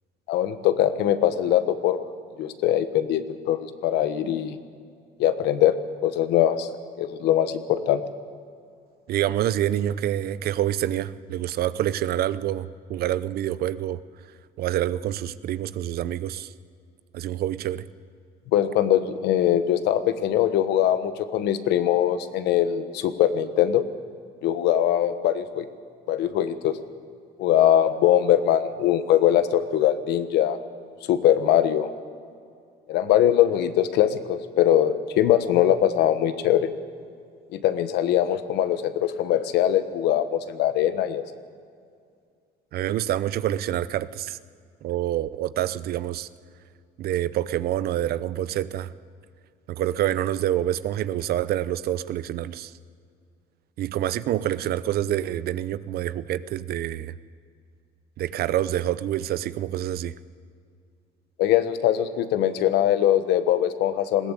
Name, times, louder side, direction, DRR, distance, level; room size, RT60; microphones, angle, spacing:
voice 1, 0.3-2.0 2.4-4.6 5.2-5.8 6.0-6.7 7.0-8.0 18.5-23.8 24.4-25.6 26.1-26.8 27.4-30.6 31.1-31.9 32.9-36.7 37.5-41.2 61.4-64.3, left 11 dB, 80° left, 11 dB, 1.2 m, -22 dB
voice 2, 9.1-14.0 14.6-16.5 17.1-17.8 42.7-44.4 44.8-46.3 47.0-48.9 49.7-52.7 53.8-57.1 58.2-60.1, right 12 dB, 65° right, 16 dB, 0.7 m, -27 dB
20.5 x 15.5 x 8.3 m, 2.2 s
cardioid pair, 110°, 17 cm